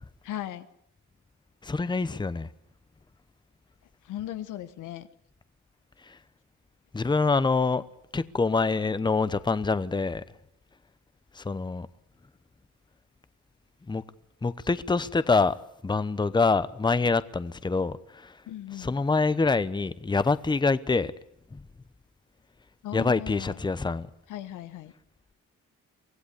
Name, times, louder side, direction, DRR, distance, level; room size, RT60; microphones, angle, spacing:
voice 1, 0.2-0.7 4.0-5.1 18.5-18.9 22.8-23.6 24.3-24.9, left 12 dB, 85° left, 1.4 m, -37 dB
voice 2, 1.6-2.5 6.1-6.2 6.9-7.8 8.1-10.2 11.3-11.9 13.9-14.0 14.4-15.6 15.8-18.4 18.8-21.1 21.5-21.6 22.9-24.1, left 4 dB, 15° left, 0.9 m, -25 dB
24.0 x 16.0 x 8.3 m
cardioid pair, 90°, 30 cm